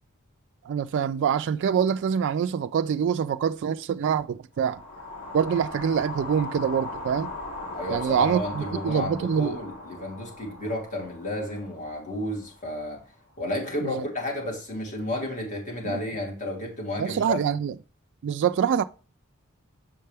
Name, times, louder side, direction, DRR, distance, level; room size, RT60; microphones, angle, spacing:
voice 1, 0.7-4.8 5.3-7.3 7.9-9.6 13.8-13.9 15.8-16.0 17.0-17.7 18.2-18.8, right 7 dB, 55° right, 0.3 m, -25 dB
sound 1, 4.6-12.8, left 2 dB, 75° left, 3.1 m, -39 dB
voice 2, 7.7-13.0 13.4-17.4, left 1 dB, 35° left, 3.0 m, -32 dB
7.4 x 5.5 x 3.4 m
head